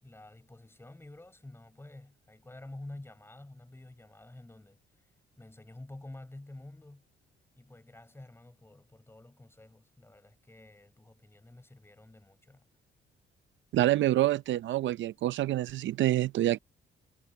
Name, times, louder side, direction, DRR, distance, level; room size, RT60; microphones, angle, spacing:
voice 1, 0.0-5.0 5.4-7.0 7.6-12.7, left 2 dB, 10° left, 4.7 m, -49 dB
voice 2, 13.7-16.6, right 14 dB, 70° right, 0.6 m, -27 dB
cardioid pair, 90°, 20 cm